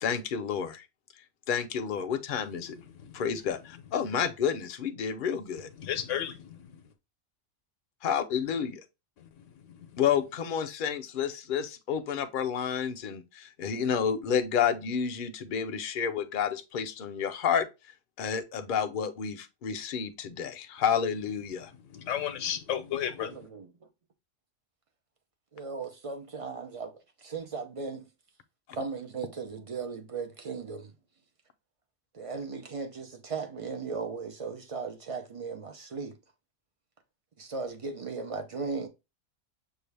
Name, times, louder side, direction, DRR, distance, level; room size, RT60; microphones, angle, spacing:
voice 1, 0.0-0.8 1.5-2.8 3.1-5.7 8.0-8.8 10.0-17.7 18.2-21.7, left 7 dB, 50° left, 0.7 m, -30 dB
voice 2, 2.7-3.2 5.8-6.8 9.6-10.0 21.8-23.4, left 10 dB, 80° left, 1.0 m, -34 dB
voice 3, 23.2-23.7 25.5-28.1 28.7-30.9 32.1-36.2 37.4-38.9, right 4 dB, 35° right, 0.6 m, -37 dB
6.3 x 2.4 x 3.3 m
omnidirectional pair, 1.3 m